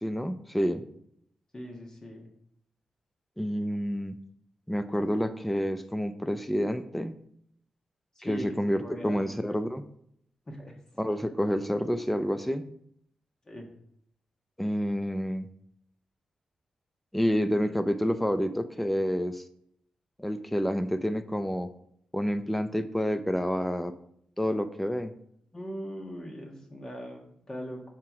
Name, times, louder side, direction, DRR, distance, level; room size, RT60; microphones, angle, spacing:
voice 1, 0.0-0.8 3.4-4.2 4.7-7.2 8.3-9.8 11.0-12.7 14.6-15.5 17.1-19.4 20.2-21.7 22.1-24.0 24.4-25.1, equal, 5° left, 10 dB, 0.5 m, -28 dB
voice 2, 1.5-2.3 8.1-9.3 10.5-10.7 13.5-13.7 25.5-27.9, equal, 30° left, 1 dB, 1.5 m, -40 dB
5.9 x 4.4 x 4.7 m, 0.71 s
cardioid pair, 95°, 2 cm